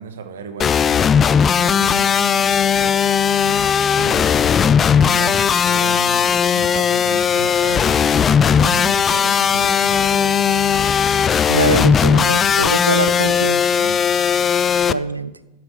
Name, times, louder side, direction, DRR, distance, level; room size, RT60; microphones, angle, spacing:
voice 1, 0.0-4.5 4.9-7.9 8.5-10.6 12.9-14.0, right 5 dB, 60° right, 9 dB, 1.2 m, -34 dB
sound 1, 0.6-14.9, left 7 dB, 20° left, 0.3 m, -17 dB
voice 2, 11.5-13.6 14.9-15.3, right 2 dB, 85° right, 16 dB, 0.5 m, -22 dB
11.5 x 7.3 x 5.7 m, 0.99 s
figure-of-eight pair, 90°, 0 cm